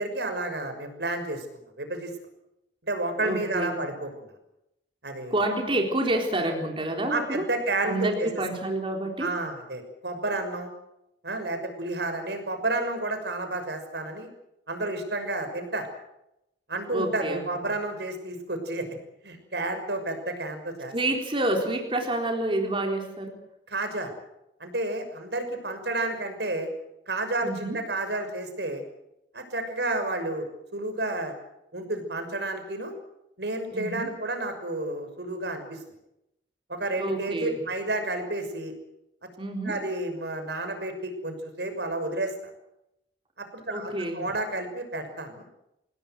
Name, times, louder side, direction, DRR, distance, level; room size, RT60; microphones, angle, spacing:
voice 1, 0.0-1.5 1.8-2.1 2.8-4.3 5.0-5.4 7.1-8.3 9.2-10.7 11.2-14.3 14.7-15.9 16.7-18.9 19.2-20.9 23.7-24.1 24.6-26.7 27.1-28.8 29.3-31.3 31.7-32.9 33.4-35.8 36.7-38.7 39.6-42.5 43.4-45.4, right 2 dB, 70° right, 7 dB, 6.2 m, -31 dB
voice 2, 3.2-3.8 5.3-7.4 7.8-9.3 16.9-17.7 20.9-23.3 27.4-27.8 33.7-34.2 37.0-37.6 39.4-39.7 43.7-44.2, right 1 dB, 30° right, 2 dB, 3.9 m, -28 dB
27.5 x 18.5 x 7.9 m, 0.85 s
head